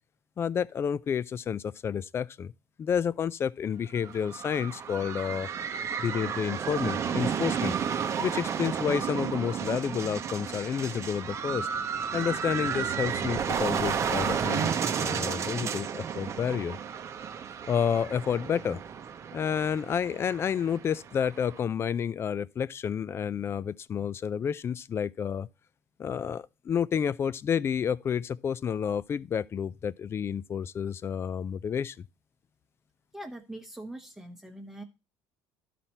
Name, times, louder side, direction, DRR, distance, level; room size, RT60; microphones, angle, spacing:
voice 1, 0.4-2.5 2.8-5.5 6.0-7.8 8.2-11.7 12.1-16.8 17.7-18.8 19.3-25.5 26.0-32.1, left 7 dB, 30° left, 0.4 m, -30 dB
sound 1, 4.0-21.6, right 7 dB, 35° right, 0.8 m, -32 dB
voice 2, 33.1-34.8, right 1 dB, 5° right, 1.1 m, -42 dB
12.0 x 4.2 x 4.4 m
cardioid pair, 115°, 8 cm